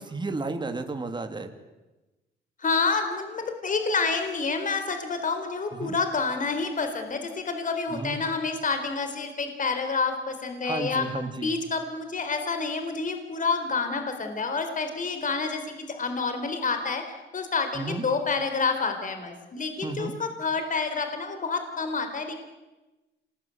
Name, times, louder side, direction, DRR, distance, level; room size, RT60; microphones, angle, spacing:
voice 1, 0.0-1.5 5.7-5.9 7.9-8.2 10.6-11.5 17.7-18.0 19.8-20.1, right 3 dB, 20° right, 6 dB, 3.0 m, -32 dB
voice 2, 2.6-11.1 11.4-17.0 17.3-22.4, left 4 dB, 40° left, 7 dB, 4.1 m, -28 dB
26.5 x 20.0 x 9.5 m, 1.1 s
cardioid pair, 90°, 20 cm